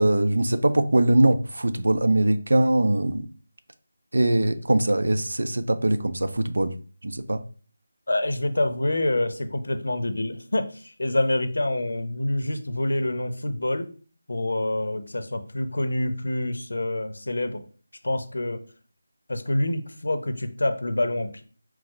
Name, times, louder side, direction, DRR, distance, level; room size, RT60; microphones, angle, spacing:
voice 1, 0.0-3.3 4.1-6.7 7.0-7.4, right 1 dB, 85° right, 0.5 m, -22 dB
voice 2, 8.1-13.9 14.3-17.6 18.0-18.6 19.3-21.4, left 1 dB, 90° left, 0.7 m, -26 dB
4.7 x 2.1 x 4.5 m
figure-of-eight pair, 175°, 0 cm